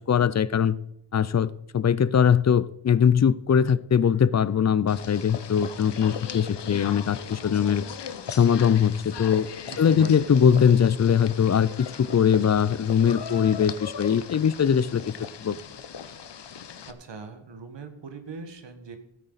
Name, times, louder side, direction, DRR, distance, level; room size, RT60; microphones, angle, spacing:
voice 1, 0.1-0.8 1.1-7.9 8.3-9.5 9.8-15.1 15.4-15.6, left 7 dB, 40° left, 18 dB, 0.4 m, -21 dB
sound 1, 4.9-16.9, left 7 dB, 70° left, 0.9 m, -38 dB
voice 2, 9.7-10.1 16.9-19.0, right 4 dB, 75° right, 7 dB, 1.7 m, -40 dB
16.0 x 9.0 x 4.1 m, 0.80 s
wide cardioid pair, 115°, 44 cm